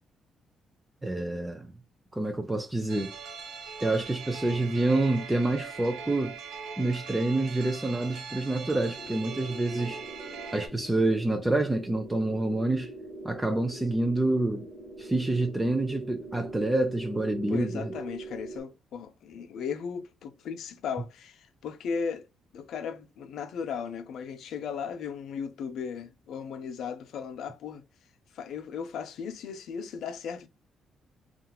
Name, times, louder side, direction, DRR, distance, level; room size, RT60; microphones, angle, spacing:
voice 1, 1.0-1.7 2.1-3.1 3.8-6.4 6.8-10.0 10.5-12.9 13.2-14.7 15.0-17.9, right 2 dB, 10° right, 0.4 m, -27 dB
sound 1, 2.9-10.7, right 6 dB, 85° right, 0.6 m, -41 dB
sound 2, 8.9-18.6, right 2 dB, 35° right, 1.3 m, -42 dB
voice 2, 17.5-22.3 22.5-27.8 28.3-30.5, left 6 dB, 75° left, 0.5 m, -36 dB
2.8 x 2.4 x 2.2 m
cardioid pair, 90°, 0 cm